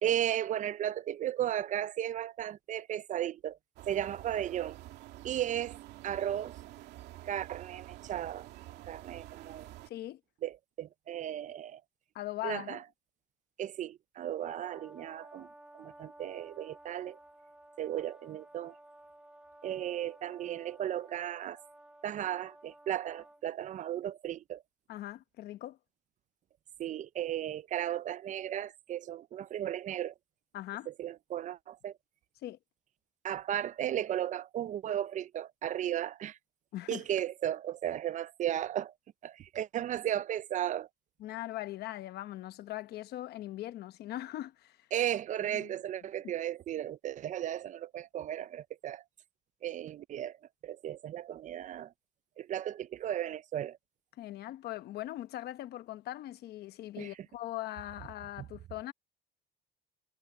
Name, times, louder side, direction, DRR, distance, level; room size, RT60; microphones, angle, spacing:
voice 1, 0.0-3.6 3.9-4.8 5.2-5.8 6.0-6.6 7.2-8.5 8.9-9.7 10.4-11.8 12.4-12.8 13.6-15.5 15.7-17.2 17.8-18.8 19.6-21.6 22.0-24.6 26.8-30.1 30.9-31.9 33.2-36.4 36.9-38.9 39.2-40.9 44.9-49.0 49.6-50.4 50.6-51.9 52.4-53.8 57.0-57.1, right 11 dB, 45° right, 0.4 m, -35 dB
sound 1, 3.8-9.9, right 16 dB, 85° right, 2.5 m, -49 dB
voice 2, 9.9-10.2 12.1-12.8 24.9-25.8 30.5-30.9 32.4-32.6 36.7-37.0 41.2-44.9 45.5-45.7 54.2-58.9, left 15 dB, 70° left, 1.1 m, -40 dB
Brass instrument, 14.4-23.4, right 1 dB, 5° right, 1.3 m, -55 dB
cardioid pair, 110°, 17 cm